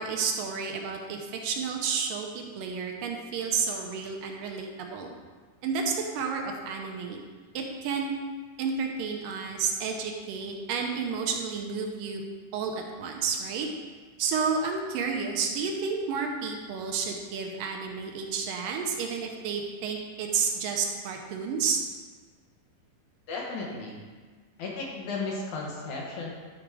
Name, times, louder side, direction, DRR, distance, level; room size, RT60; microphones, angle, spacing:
voice 1, 0.0-5.1 5.6-7.2 7.5-8.1 8.6-12.2 12.5-13.7 14.2-21.8, right 5 dB, 75° right, 2 dB, 2.4 m, -31 dB
voice 2, 23.3-24.0 24.6-26.3, left 3 dB, 65° left, -2 dB, 2.4 m, -34 dB
11.5 x 4.9 x 4.7 m, 1.5 s
omnidirectional pair, 4.1 m